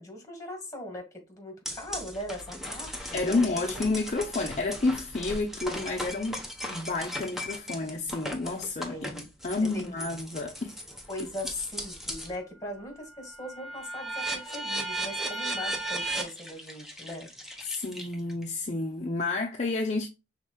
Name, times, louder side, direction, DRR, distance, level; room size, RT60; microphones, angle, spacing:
voice 1, 0.0-3.8 8.9-9.3 9.6-9.8 11.1-17.3, left 1 dB, 20° left, 2.0 m, -39 dB
sound 1, 1.7-12.4 12.8-18.4, right 1 dB, ahead, 1.0 m, -37 dB
voice 2, 3.1-10.7 17.6-20.1, left 3 dB, 40° left, 0.7 m, -30 dB
5.9 x 3.7 x 2.3 m
head